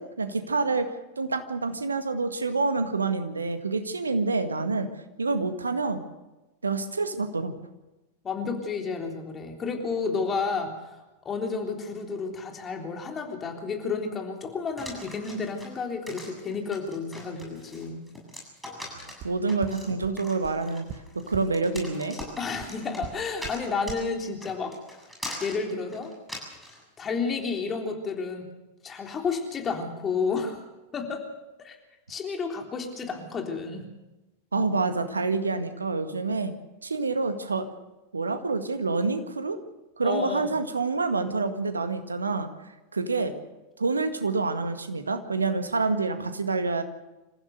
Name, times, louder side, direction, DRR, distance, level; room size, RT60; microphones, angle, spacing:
voice 1, 0.0-4.9 5.2-6.0 6.6-7.5 19.0-20.8 21.1-22.2 34.5-36.5 36.8-37.7 38.1-39.6 40.0-42.5 42.9-43.3 43.8-46.8, right 3 dB, 75° right, 8 dB, 1.9 m, -27 dB
voice 2, 8.2-11.0 11.3-18.1 22.4-24.7 25.4-26.1 27.0-28.5 28.8-30.6 30.9-31.2 31.6-31.8 32.1-33.8 40.0-40.5, left 5 dB, 25° left, 2 dB, 3.6 m, -31 dB
sound 1, 14.8-26.8, left 1 dB, ahead, 7.6 m, -41 dB
sound 2, 19.2-19.3 19.6-19.7 20.0-20.1 20.4-20.5 20.9-21.0 21.3-21.4 21.8-21.9 22.2-22.3 22.6-22.7 23.0-23.1 23.4-23.5 23.9-24.0, right 9 dB, 35° right, 1.5 m, -37 dB
26.5 x 15.0 x 6.7 m, 1.0 s
figure-of-eight pair, 90°, 0 cm